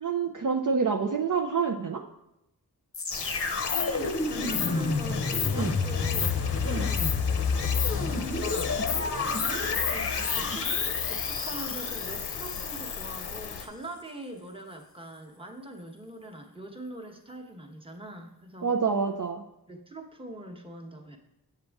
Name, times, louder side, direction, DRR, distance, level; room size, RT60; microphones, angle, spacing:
voice 1, 0.0-2.0 5.5-5.7 6.6-6.9 18.6-19.4, right 5 dB, 50° right, 3 dB, 0.5 m, -27 dB
sound 1, 2.9-13.0 13.6-13.7, left 4 dB, 35° left, 0.7 m, -30 dB
Stream, 3.1-13.7, left 7 dB, 85° left, 0.7 m, -33 dB
voice 2, 3.7-6.9 7.5-8.8 9.7-10.7 11.1-18.7 19.7-21.2, right 1 dB, 15° right, 2 dB, 1.1 m, -43 dB
7.9 x 6.7 x 3.5 m, 0.87 s
wide cardioid pair, 85°, 40 cm